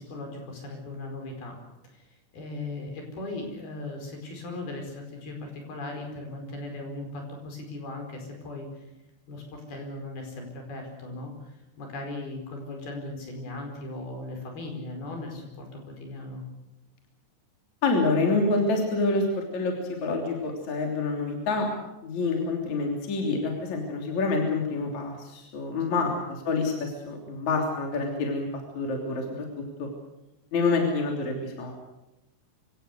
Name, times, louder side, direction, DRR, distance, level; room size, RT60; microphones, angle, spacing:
voice 1, 0.0-1.6 1.9-2.0 2.3-8.7 9.3-11.5 11.8-16.4 26.0-26.1, left 2 dB, 65° left, 3 dB, 6.8 m, -38 dB
voice 2, 17.8-21.7 22.0-29.5 29.8-29.9 30.5-31.7, left 3 dB, 45° left, 2 dB, 4.3 m, -27 dB
26.0 x 17.0 x 8.1 m, 0.92 s
omnidirectional pair, 4.9 m